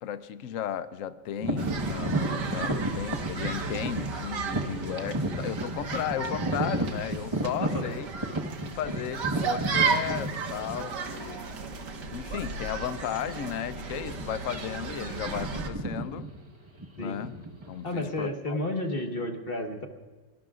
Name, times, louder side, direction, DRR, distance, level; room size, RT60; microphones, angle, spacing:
voice 1, 0.0-8.1 8.7-11.4 12.1-16.3 16.9-17.4 17.7-18.6, left 10 dB, 80° left, 13 dB, 0.7 m, -35 dB
sound 1, 1.4-11.2 11.8-11.9 12.6-12.8 13.1-13.3 14.0-14.5 14.8-18.2, right 1 dB, 20° right, 1.0 m, -33 dB
sound 2, 1.6-15.7, right 5 dB, 60° right, 2.0 m, -34 dB
voice 2, 7.6-8.0 8.8-8.9 17.0-17.2 17.8-19.9, left 1 dB, 30° left, 4 dB, 1.4 m, -32 dB
24.0 x 19.0 x 2.4 m, 1.3 s
omnidirectional pair, 2.1 m